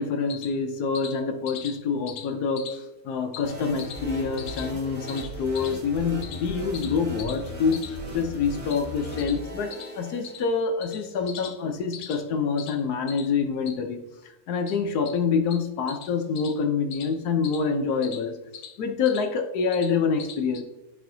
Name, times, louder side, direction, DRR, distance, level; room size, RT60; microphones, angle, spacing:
voice 1, 0.0-14.0 14.5-20.6, left 5 dB, 85° left, 5 dB, 1.3 m, -26 dB
sound 1, 3.4-10.5, equal, 25° right, 1.2 m, -38 dB
12.5 x 4.3 x 2.6 m, 1.0 s
omnidirectional pair, 1.6 m